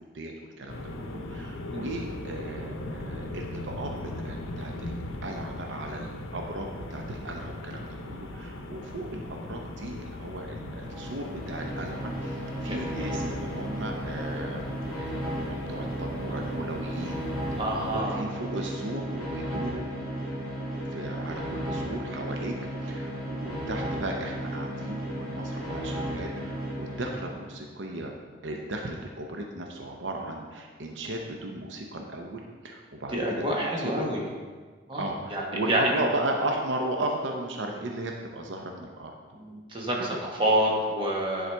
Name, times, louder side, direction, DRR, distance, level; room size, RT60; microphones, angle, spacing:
voice 1, 0.0-14.7 15.0-17.6 17.9-19.9 20.9-22.6 22.8-28.1 28.4-33.9 35.0-39.1 40.0-40.1, right 1 dB, 65° right, 1 dB, 0.7 m, -36 dB
sound 1, 0.7-18.0, left 1 dB, 90° left, 0.7 m, -39 dB
sound 2, 10.7-27.5, equal, 5° left, 2.0 m, -34 dB
voice 2, 12.6-13.1 17.6-18.1 33.1-34.2 34.9-35.9 39.3-41.5, right 1 dB, 25° right, -2 dB, 1.2 m, -28 dB
10.0 x 3.9 x 4.5 m, 1.5 s
head